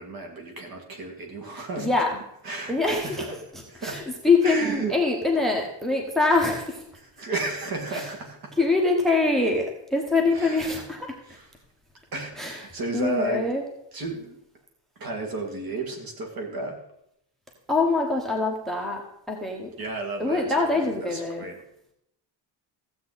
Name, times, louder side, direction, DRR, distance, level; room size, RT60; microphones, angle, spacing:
voice 1, 0.0-1.9 2.4-3.3 3.7-4.0 4.4-5.0 7.0-8.6 10.3-10.9 11.2-11.5 12.1-13.5 13.9-14.4 15.0-16.8 19.8-21.6, right 3 dB, 45° right, 2 dB, 2.3 m, -33 dB
voice 2, 1.8-2.2 2.7-3.4 3.8-6.8 7.9-8.1 8.6-11.1 12.4-12.6 12.9-13.6 17.7-19.0 19.3-19.7 20.2-21.5, left 3 dB, ahead, 1 dB, 1.1 m, -24 dB
15.0 x 7.7 x 4.1 m, 0.77 s
cardioid pair, 170°, 47 cm